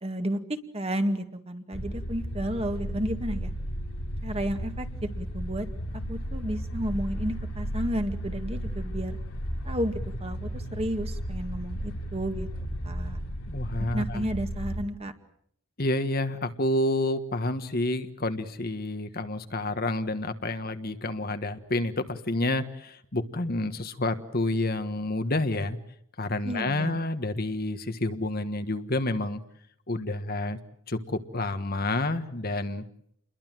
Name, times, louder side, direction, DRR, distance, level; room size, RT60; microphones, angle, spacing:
voice 1, 0.0-3.5 4.2-4.9 5.2-5.7 6.1-9.2 9.7-12.5 12.8-13.2 13.9-15.1 26.4-27.0, equal, 30° right, 6 dB, 2.0 m, -32 dB
sound 1, 1.7-14.8, equal, 85° left, 3.1 m, -34 dB
voice 2, 13.5-14.2 15.8-25.8 26.2-29.4 29.9-30.6 30.9-32.8, left 2 dB, 45° left, 8 dB, 1.5 m, -29 dB
29.0 x 22.0 x 7.7 m, 0.69 s
head